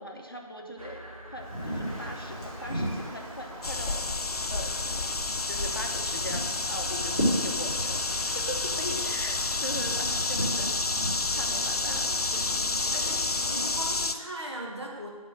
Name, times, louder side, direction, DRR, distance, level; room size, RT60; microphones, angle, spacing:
voice 1, 0.0-4.1 4.5-5.2 5.4-10.8 11.3-12.1 12.5-12.8, left 1 dB, 40° left, 1 dB, 0.9 m, -40 dB
sound 1, 0.8-14.1, right 1 dB, 65° right, 1.1 m, -47 dB
Wind, 1.3-13.7, equal, 15° right, 1.7 m, -36 dB
sound 2, 3.6-14.1, left 3 dB, 90° left, 0.7 m, -30 dB
voice 2, 11.8-15.1, right 1 dB, 45° right, -2 dB, 1.4 m, -40 dB
8.0 x 4.4 x 6.2 m, 1.5 s
figure-of-eight pair, 180°, 19 cm